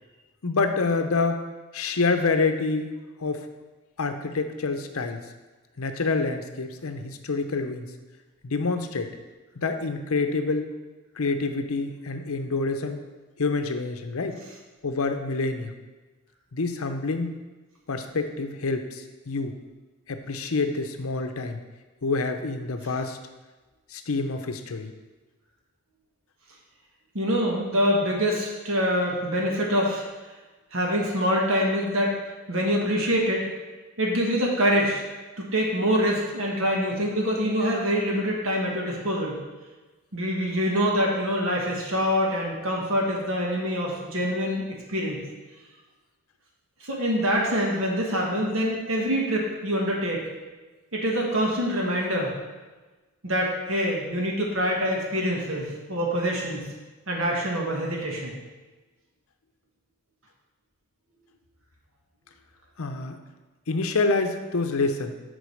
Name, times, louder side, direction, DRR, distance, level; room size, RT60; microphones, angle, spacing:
voice 1, 0.4-1.4 1.7-2.9 3.2-3.5 4.0-5.2 5.8-7.9 8.4-9.1 9.6-10.7 11.2-13.0 13.4-14.4 14.8-15.8 16.5-17.3 17.9-19.5 20.1-21.6 22.0-23.2 23.9-24.9 62.8-63.2 63.7-65.1, left 3 dB, 70° left, 7 dB, 0.7 m, -27 dB
voice 2, 27.1-30.0 30.7-32.2 32.5-33.5 34.0-35.0 35.4-39.4 40.1-44.6 44.9-45.2 46.8-50.2 50.9-52.3 53.2-56.7 57.1-58.3, equal, 65° right, -2 dB, 1.5 m, -25 dB
8.3 x 3.8 x 6.4 m, 1.2 s
head